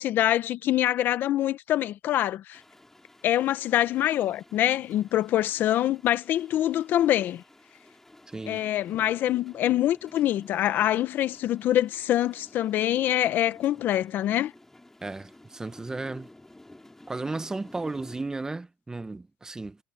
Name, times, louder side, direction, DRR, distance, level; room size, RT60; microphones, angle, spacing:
voice 1, 0.0-2.6 3.2-7.4 8.5-14.5, left 12 dB, 60° left, 1.4 m, -25 dB
sound 1, 2.5-18.2, left 1 dB, 10° left, 5.9 m, -52 dB
voice 2, 8.3-8.6 15.0-16.3 17.1-19.8, right 3 dB, 15° right, 1.2 m, -34 dB
supercardioid pair, 85°, 4 cm